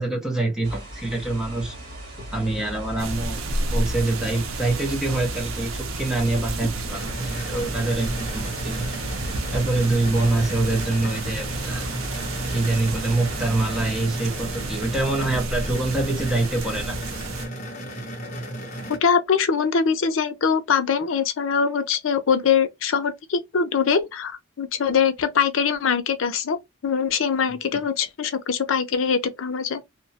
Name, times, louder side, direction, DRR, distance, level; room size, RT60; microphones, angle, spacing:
voice 1, 0.0-1.8 2.3-3.4 3.7-8.9 9.5-12.0 12.5-17.0, right 2 dB, 5° right, 0.7 m, -25 dB
sound 1, 0.6-13.9, equal, 50° right, 1.5 m, -37 dB
sound 2, 3.0-17.5, right 2 dB, 85° right, 0.5 m, -32 dB
sound 3, 6.9-19.0, right 1 dB, 35° left, 0.8 m, -34 dB
voice 2, 19.0-26.6 26.8-29.8, left 6 dB, 75° left, 0.5 m, -22 dB
2.8 x 2.2 x 2.7 m
head